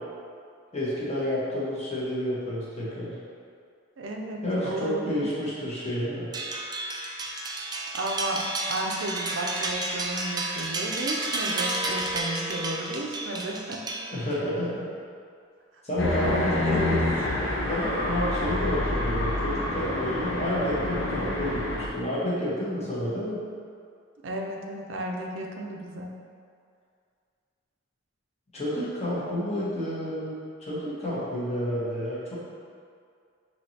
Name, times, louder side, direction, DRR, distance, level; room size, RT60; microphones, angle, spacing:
voice 1, 0.7-3.1 4.4-6.3 14.1-14.8 15.8-16.3 16.7-17.0 17.7-23.4 28.5-32.3, equal, 35° left, -8 dB, 1.1 m, -30 dB
voice 2, 4.0-5.2 7.9-13.8 16.2-17.0 24.2-26.1, right 1 dB, 75° right, 0 dB, 0.5 m, -33 dB
sound 1, 6.3-14.5, right 2 dB, 20° right, 0.3 m, -31 dB
sound 2, 16.0-21.9, left 1 dB, 80° left, 0.7 m, -27 dB
6.3 x 2.9 x 2.8 m, 2.3 s
head